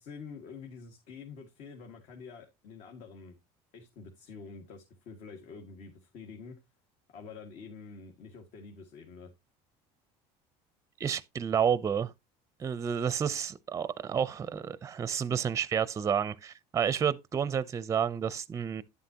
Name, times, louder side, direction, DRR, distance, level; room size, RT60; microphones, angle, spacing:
voice 1, 0.0-3.4 3.7-6.6 7.1-9.3, left 5 dB, 65° left, 1.9 m, -47 dB
voice 2, 11.0-12.1 12.6-18.8, right 7 dB, 25° right, 0.5 m, -30 dB
10.5 x 7.6 x 2.8 m
cardioid pair, 130°, 13 cm